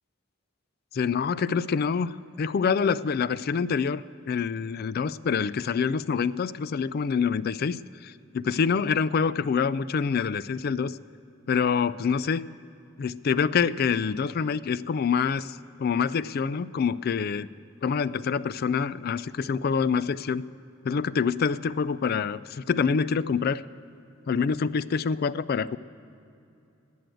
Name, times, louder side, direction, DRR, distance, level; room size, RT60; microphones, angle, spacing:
voice 1, 0.9-11.0 11.5-12.5 13.0-17.5 17.8-20.4 20.8-23.6 24.3-25.8, left 6 dB, 50° left, 17 dB, 0.3 m, -26 dB
18.0 x 6.4 x 9.2 m, 2.7 s
head